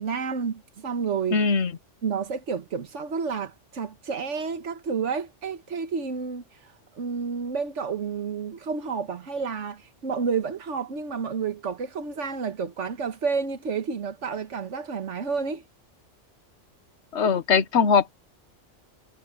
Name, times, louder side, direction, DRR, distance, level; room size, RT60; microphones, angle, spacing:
voice 1, 0.0-1.4 2.0-6.4 6.9-15.6, right 5 dB, 75° right, 1.6 m, -30 dB
voice 2, 1.3-1.7 17.1-18.1, left 5 dB, 65° left, 1.3 m, -21 dB
omnidirectional pair, 1.2 m